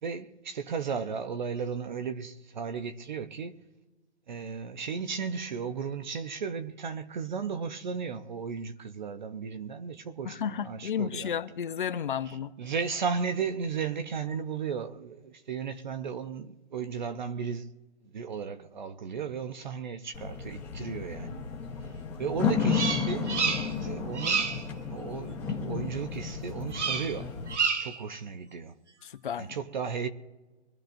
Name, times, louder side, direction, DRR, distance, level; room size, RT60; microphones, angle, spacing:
voice 1, 0.0-3.6 4.3-11.3 12.3-17.7 18.0-21.4 22.2-23.4 23.8-24.5 24.9-27.3 27.8-28.7 29.4-30.1, right 6 dB, 40° right, 0.8 m, -35 dB
voice 2, 10.2-12.5 29.0-29.6, left 8 dB, 50° left, 0.7 m, -33 dB
sound 1, 20.1-27.5, left 6 dB, 5° left, 1.0 m, -33 dB
Bird vocalization bird call bird song, 22.7-23.9 24.1-24.7 26.7-27.2 27.5-28.0, right 5 dB, 85° right, 1.5 m, -29 dB
24.5 x 13.0 x 2.6 m
hypercardioid pair, 165°, 34 cm